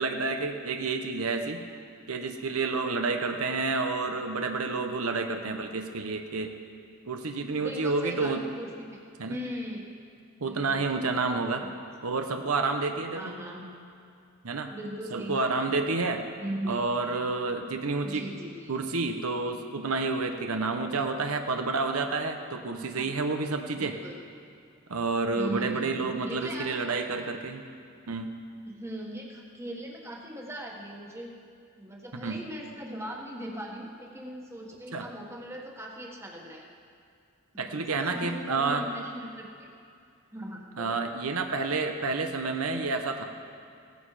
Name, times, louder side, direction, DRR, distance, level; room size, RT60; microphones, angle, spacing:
voice 1, 0.0-1.6 2.1-6.5 7.0-8.4 9.2-9.4 10.4-11.6 12.0-13.2 14.4-14.7 15.1-16.2 16.7-18.2 18.7-24.0 24.9-27.6 28.1-28.3 32.1-32.4 34.9-35.1 37.6-38.8 40.8-43.2, right 3 dB, 85° right, 5 dB, 1.0 m, -29 dB
voice 2, 7.6-9.0 9.3-9.9 10.4-11.7 13.1-13.7 14.7-15.7 16.4-17.0 18.0-18.8 23.0-23.1 23.8-24.2 25.3-26.8 28.6-31.3 31.8-36.7 37.5-39.7 40.3-41.0, equal, 10° right, -1 dB, 1.4 m, -39 dB
17.0 x 15.0 x 5.0 m, 2.4 s
head